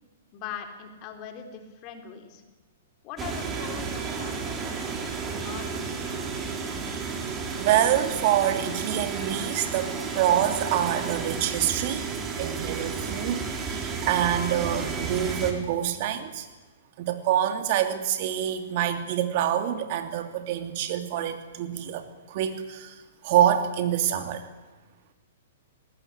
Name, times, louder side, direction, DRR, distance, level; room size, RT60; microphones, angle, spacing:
voice 1, 0.3-2.4 3.0-6.2, left 7 dB, 40° left, 5 dB, 3.9 m, -41 dB
sound 1, 3.2-15.5, right 5 dB, 20° right, 4.1 m, -32 dB
voice 2, 7.6-12.0 12.4-16.5 17.0-24.5, right 11 dB, 50° right, 7 dB, 2.8 m, -26 dB
20.0 x 18.5 x 9.8 m, 1.2 s
hypercardioid pair, 115°, 0 cm